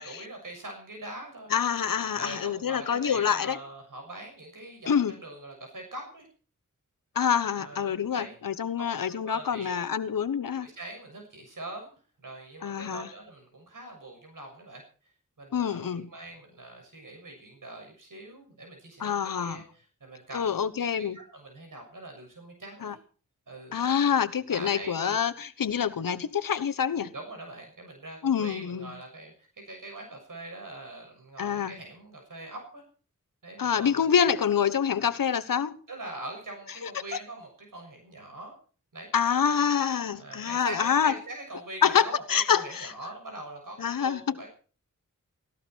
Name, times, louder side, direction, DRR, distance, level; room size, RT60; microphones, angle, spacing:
voice 1, 0.0-1.5 2.2-6.3 7.6-8.3 8.8-9.9 10.6-11.9 12.2-14.8 15.4-20.7 20.9-23.0 23.5-23.7 24.5-25.2 27.0-32.8 33.4-34.1 35.9-38.6 38.9-39.1 40.2-44.5, right 2 dB, 70° right, 6.8 m, -43 dB
voice 2, 1.5-3.6 4.9-5.1 7.1-10.7 12.6-13.1 15.5-16.1 19.0-19.6 20.3-21.2 22.8-23.0 23.7-27.1 28.2-28.9 31.4-31.7 33.6-35.8 36.8-36.9 39.1-41.1 41.8-42.9 43.8-44.2, left 7 dB, 85° left, 1.1 m, -26 dB
18.0 x 16.0 x 4.6 m
cardioid pair, 55°, 33 cm